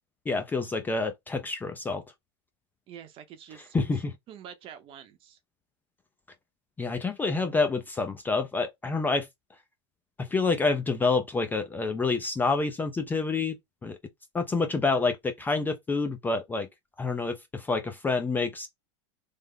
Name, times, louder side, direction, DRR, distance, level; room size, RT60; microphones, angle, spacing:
voice 1, 0.3-2.0 3.5-4.1 6.8-9.3 10.2-13.6 13.8-14.0 14.3-16.7 17.0-18.7, left 3 dB, 10° left, 0.4 m, -28 dB
voice 2, 2.9-3.8 4.3-5.4, right 9 dB, 35° right, 0.7 m, -46 dB
3.3 x 2.0 x 3.6 m
supercardioid pair, 135°, 15 cm